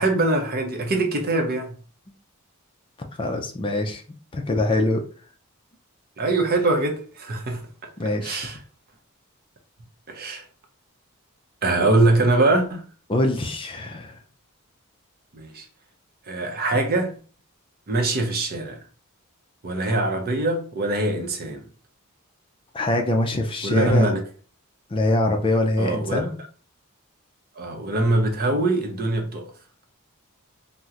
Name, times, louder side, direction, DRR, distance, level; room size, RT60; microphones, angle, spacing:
voice 1, 0.0-1.8 6.2-7.7 8.2-8.6 10.1-10.4 11.6-12.8 15.3-15.6 16.3-17.2 17.9-18.8 19.6-21.7 23.6-24.2 25.8-26.3 27.6-29.5, right 2 dB, 45° right, 0.6 m, -23 dB
voice 2, 3.2-4.0 4.3-5.0 8.0-8.5 13.1-14.1 19.9-20.0 22.7-24.1 24.9-26.4, left 1 dB, 25° left, 0.4 m, -23 dB
2.8 x 2.1 x 3.6 m
head